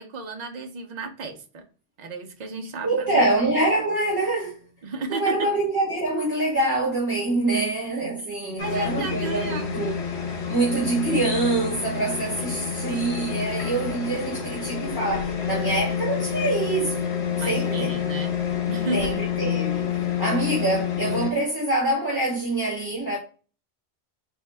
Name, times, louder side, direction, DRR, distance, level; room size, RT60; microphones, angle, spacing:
voice 1, 0.0-1.6 2.0-3.2 4.8-5.5 8.6-9.7 10.3-10.5 17.4-18.3 18.7-19.2 20.1-20.2, right 3 dB, 45° right, 0.7 m, -33 dB
voice 2, 2.8-4.6 5.1-10.0 10.5-17.0 17.5-18.0 18.9-23.2, right 2 dB, 20° right, 1.3 m, -25 dB
sound 1, 8.6-21.3, left 8 dB, 75° left, 1.2 m, -28 dB
4.1 x 2.7 x 3.3 m
omnidirectional pair, 1.1 m